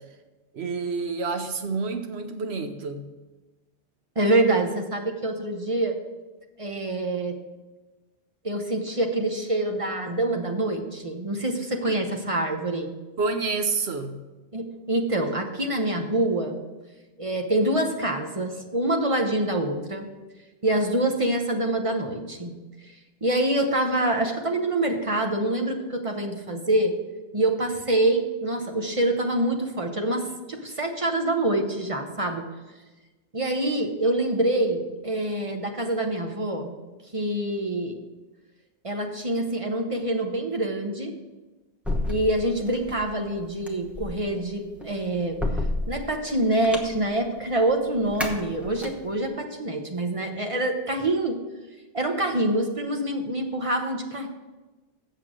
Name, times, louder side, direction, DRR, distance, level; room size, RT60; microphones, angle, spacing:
voice 1, 0.5-3.1 11.8-12.0 13.2-14.2, right 4 dB, 65° right, 7 dB, 1.1 m, -28 dB
voice 2, 4.2-5.9 6.6-7.4 8.4-12.9 14.5-16.6 17.2-20.1 20.6-22.5 22.8-22.9 23.2-27.0 27.3-32.5 33.3-36.7 37.1-38.0 38.8-41.1 42.1-45.4 45.9-51.4 51.9-54.3, right 1 dB, 30° right, 3 dB, 0.9 m, -26 dB
sound 1, 41.8-49.3, left 2 dB, ahead, 0.9 m, -32 dB
7.9 x 6.8 x 6.2 m, 1.2 s
omnidirectional pair, 1.2 m